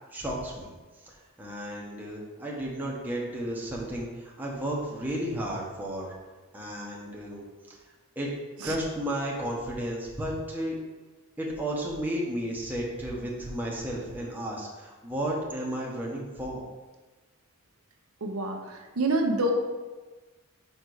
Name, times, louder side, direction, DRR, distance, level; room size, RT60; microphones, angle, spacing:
voice 1, 0.1-0.7 1.0-6.1 6.5-7.4 8.2-8.3 8.6-10.8 11.4-16.7, right 1 dB, 10° right, -4 dB, 1.1 m, -33 dB
voice 2, 18.2-19.5, right 2 dB, 85° right, 2 dB, 0.8 m, -27 dB
6.0 x 4.4 x 4.7 m, 1.2 s
head